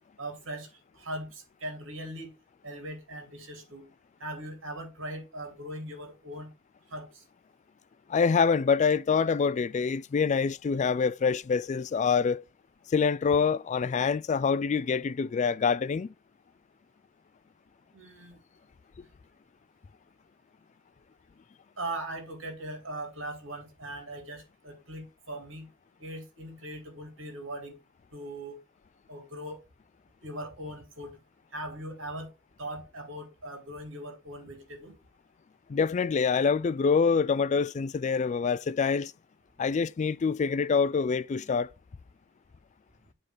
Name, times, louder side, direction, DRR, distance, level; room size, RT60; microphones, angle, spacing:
voice 1, 0.2-2.3 2.6-3.9 4.2-6.5 6.9-7.2 17.9-18.4 21.8-25.7 26.0-27.7 28.1-28.6 29.1-29.6 30.2-31.2 31.5-32.3 32.6-35.0, right 1 dB, 70° right, 2.8 m, -40 dB
voice 2, 8.1-12.4 12.9-16.1 35.7-39.1 39.6-41.7, left 5 dB, 35° left, 0.3 m, -26 dB
7.8 x 3.7 x 6.3 m
head